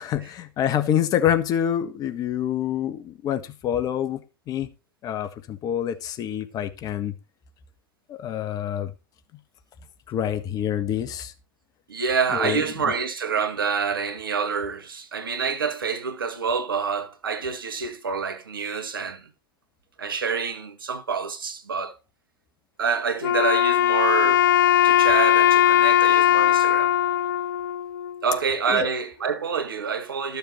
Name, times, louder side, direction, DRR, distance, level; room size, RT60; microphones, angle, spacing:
voice 1, 0.0-4.2 4.5-4.7 5.0-7.1 8.1-8.9 10.1-11.3 12.3-12.6 28.7-28.9, left 10 dB, 30° left, 1.6 m, -26 dB
voice 2, 11.9-19.3 20.0-21.9 22.8-24.5 24.8-26.9 28.2-30.4, right 6 dB, 70° right, 2.0 m, -27 dB
Wind instrument woodwind instrument, 23.2-28.4, left 11 dB, 60° left, 0.6 m, -19 dB
14.0 x 7.1 x 4.5 m
figure-of-eight pair, 90°, 12 cm